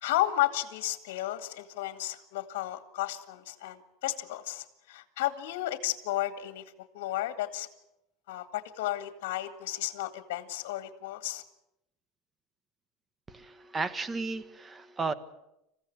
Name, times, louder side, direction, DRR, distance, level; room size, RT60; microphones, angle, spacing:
voice 1, 0.0-6.6 6.9-7.7 8.3-11.4, left 15 dB, 85° left, 10 dB, 1.9 m, -33 dB
voice 2, 13.3-15.1, right 4 dB, 15° right, 13 dB, 1.5 m, -34 dB
27.5 x 15.5 x 9.6 m, 0.88 s
supercardioid pair, 140°, 0 cm